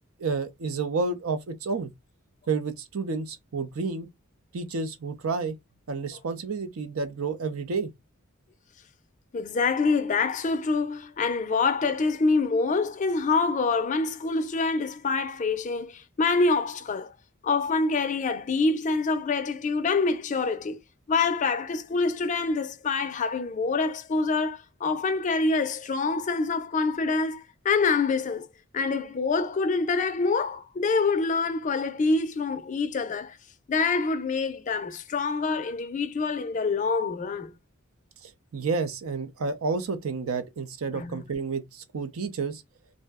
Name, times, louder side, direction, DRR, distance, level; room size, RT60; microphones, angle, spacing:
voice 1, 0.2-1.9 2.5-4.1 4.5-5.5 5.9-7.9 38.2-42.6, right 4 dB, 80° right, 0.6 m, -30 dB
voice 2, 9.3-17.1 17.4-20.8 21.1-28.5 28.7-33.4 33.7-37.5 40.9-41.2, left 4 dB, 35° left, 0.4 m, -26 dB
2.6 x 2.1 x 3.4 m
head